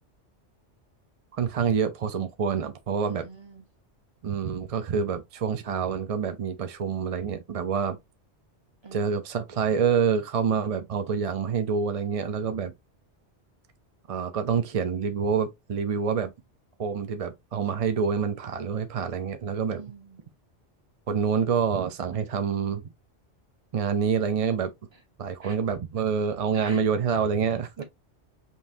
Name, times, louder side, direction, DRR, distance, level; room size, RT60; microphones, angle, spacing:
voice 1, 1.4-3.3 4.2-8.0 8.9-12.7 14.1-16.3 16.8-19.9 21.1-22.8 23.7-24.7 25.2-27.7, right 6 dB, 45° right, 0.4 m, -27 dB
voice 2, 2.9-3.6 8.8-9.1 19.7-20.2 25.4-25.5 26.5-26.8 27.8-27.9, right 3 dB, 25° right, 1.0 m, -44 dB
5.4 x 3.1 x 2.6 m
omnidirectional pair, 1.2 m